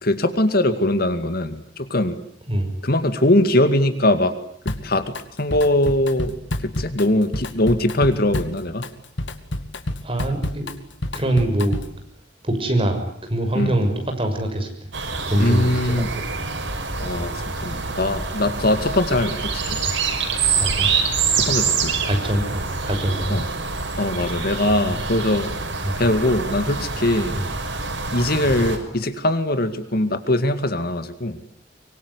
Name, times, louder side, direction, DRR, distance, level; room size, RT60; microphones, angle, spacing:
voice 1, 0.0-2.2 2.8-4.4 4.7-5.1 5.4-6.3 6.6-8.9 13.5-13.7 15.4-16.1 17.0-19.8 21.3-22.0 23.3-23.4 24.0-25.6 26.0-27.4 28.1-31.4, left 1 dB, 55° left, 10 dB, 2.3 m, -21 dB
Drum kit, 4.7-5.2 5.5-12.0, left 1 dB, 75° left, 2.3 m, -29 dB
voice 2, 10.0-10.7 11.1-11.7 12.4-14.9 15.3-16.1 20.6-20.9 22.0-23.4 24.6-25.0 25.8-25.9 27.3-27.4 28.4-28.5, right 1 dB, 30° right, 5 dB, 6.5 m, -24 dB
sound 1, 14.9-28.8, right 5 dB, 90° right, 6.1 m, -26 dB
24.5 x 24.5 x 9.8 m, 0.65 s
head